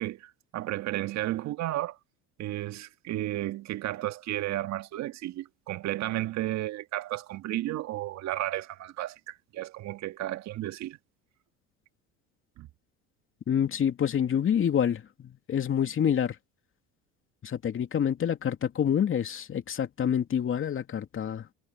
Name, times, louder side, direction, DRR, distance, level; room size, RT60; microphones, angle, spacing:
voice 1, 0.0-2.0 2.4-11.0 12.6-12.7, right 15 dB, 60° right, 1.8 m, -33 dB
voice 2, 13.5-16.3 17.4-21.4, left 8 dB, 40° left, 2.8 m, -27 dB
hypercardioid pair, 80°, 32 cm